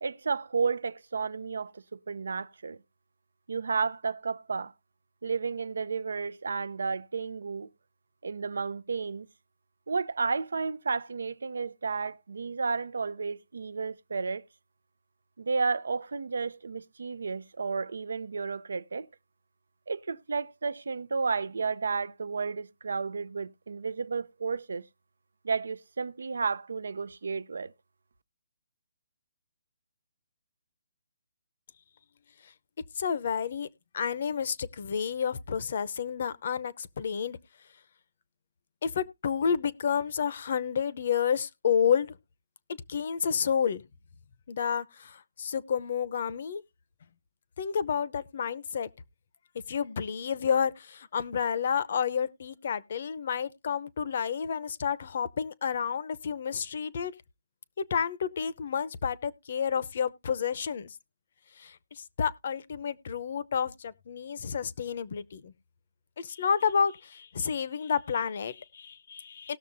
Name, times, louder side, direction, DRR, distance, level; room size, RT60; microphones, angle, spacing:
voice 1, 0.0-2.8 3.5-4.7 5.2-7.7 8.2-9.3 9.9-14.5 15.4-19.1 19.9-24.8 25.4-27.7, right 4 dB, 85° right, 0.5 m, -32 dB
voice 2, 32.9-33.7 33.9-37.4 38.8-42.2 42.7-43.8 44.5-46.6 47.6-48.9 49.7-57.1 57.8-61.0 61.6-65.5 66.2-69.6, left 7 dB, 50° left, 0.7 m, -30 dB
19.0 x 6.6 x 2.6 m
hypercardioid pair, 165°, 0 cm